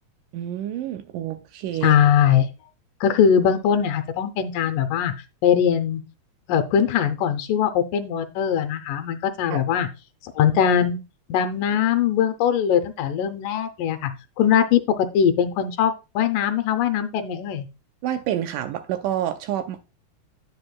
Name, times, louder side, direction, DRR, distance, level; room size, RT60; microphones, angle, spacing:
voice 1, 0.3-2.0 9.5-9.6 18.0-19.8, right 11 dB, 80° right, 2.0 m, -28 dB
voice 2, 1.8-2.5 3.0-5.1 5.4-6.0 6.5-9.9 10.4-11.0 11.3-14.1 14.4-17.7, left 8 dB, 75° left, 2.2 m, -21 dB
9.6 x 7.2 x 2.2 m
omnidirectional pair, 4.1 m